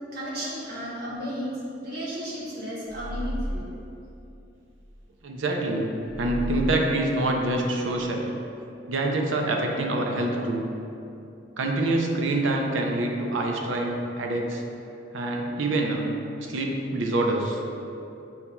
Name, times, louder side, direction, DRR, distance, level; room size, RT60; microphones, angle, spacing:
voice 1, 0.1-1.6 1.8-3.7, equal, 55° right, -7 dB, 1.2 m, -33 dB
sound 1, 2.9-5.0 6.0-8.1, equal, 55° left, 1.4 m, -35 dB
voice 2, 5.2-5.9 6.2-8.2 8.9-10.7 11.6-14.6 15.1-16.0 16.5-17.6, right 2 dB, 75° right, 1 dB, 0.5 m, -26 dB
7.6 x 2.7 x 2.3 m, 2.8 s
head